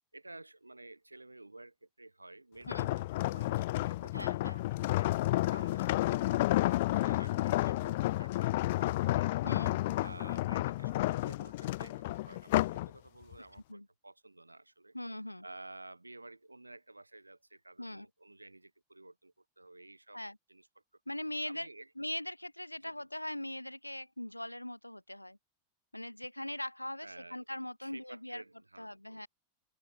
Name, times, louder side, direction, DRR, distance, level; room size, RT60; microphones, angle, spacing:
voice 1, 0.1-5.1 5.4-9.5 10.0-15.0 15.4-20.2 20.5-20.7 21.5-21.9 22.8-22.9 27.0-27.4 27.8-29.3, right 2 dB, 85° right, 1.3 m, -52 dB
voice 2, 2.7-3.0 4.1-4.6 9.4-9.8 13.4-13.9 14.9-15.5 17.8-18.1 20.1-20.4 21.1-21.7 22.0-25.4 25.9-28.4 28.8-29.3, left 1 dB, 85° left, 0.8 m, -41 dB
sound 1, 2.7-12.9 13.3-13.6, left 17 dB, 55° left, 0.3 m, -31 dB
open air
figure-of-eight pair, 90°, 0 cm